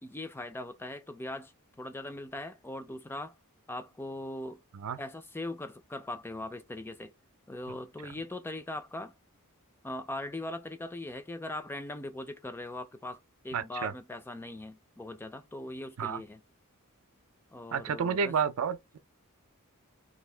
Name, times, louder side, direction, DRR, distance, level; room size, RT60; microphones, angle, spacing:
voice 1, 0.0-1.5 1.8-3.4 3.7-4.6 5.0-7.1 7.5-9.1 9.8-16.4 17.5-18.3, left 1 dB, 10° left, 0.3 m, -40 dB
voice 2, 13.5-13.9 16.0-16.2 17.7-19.0, right 6 dB, 65° right, 0.4 m, -30 dB
2.7 x 2.6 x 3.2 m
head